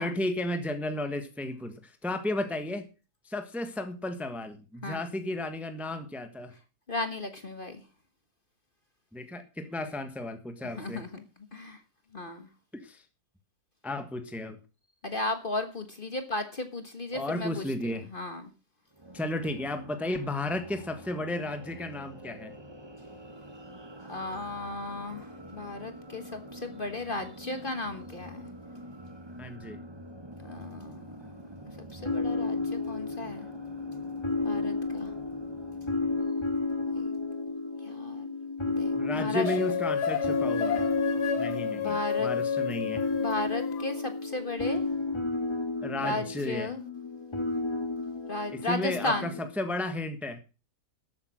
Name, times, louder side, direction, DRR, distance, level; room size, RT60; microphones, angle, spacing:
voice 1, 0.0-2.9 3.2-6.5 9.1-11.0 12.8-13.0 13.8-14.6 17.1-18.0 19.1-22.5 29.4-29.8 39.0-40.8 41.4-43.0 45.8-46.7 48.5-50.4, left 1 dB, ahead, 8 dB, 1.2 m, -33 dB
voice 2, 6.9-7.8 10.6-11.2 11.5-11.8 12.1-12.5 15.0-17.6 18.1-18.4 24.1-28.4 30.4-31.1 31.9-33.5 34.4-35.1 36.9-37.1 37.9-38.3 38.6-39.5 41.7-42.3 43.1-44.8 46.0-46.8 48.3-49.3, left 2 dB, 35° left, 8 dB, 1.4 m, -35 dB
sound 1, 18.9-36.2, right 1 dB, 20° right, 1.1 m, -46 dB
sound 2, 32.0-49.5, left 3 dB, 15° left, 1.9 m, -32 dB
sound 3, 39.4-43.9, left 6 dB, 85° left, 1.8 m, -31 dB
13.0 x 8.6 x 6.3 m, 0.34 s
omnidirectional pair, 1.7 m